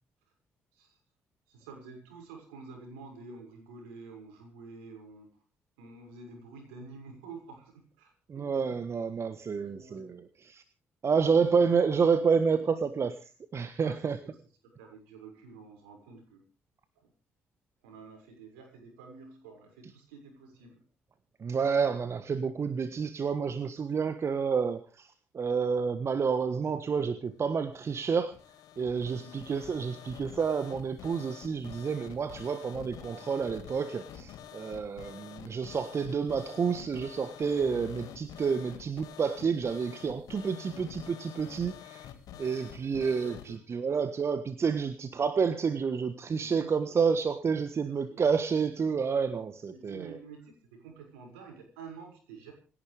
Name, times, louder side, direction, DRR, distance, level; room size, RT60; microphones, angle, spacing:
voice 1, 1.5-5.3 5.8-8.8 9.6-10.1 11.3-11.6 13.8-14.4 14.6-16.4 16.9-17.1 17.8-20.8 29.1-29.3 42.3-42.4 43.2-44.2 46.4-47.0 47.8-48.2 49.7-52.5, right 4 dB, 75° right, 3 dB, 6.5 m, -49 dB
voice 2, 8.3-10.6 11.0-13.1 13.5-14.2 21.4-25.1 25.3-28.3 28.8-42.0 42.4-50.2, right 5 dB, 40° right, 12 dB, 1.4 m, -29 dB
sound 1, 27.7-43.5, left 10 dB, 60° left, 2.1 m, -47 dB
27.5 x 11.5 x 3.6 m, 0.38 s
figure-of-eight pair, 45°, 7 cm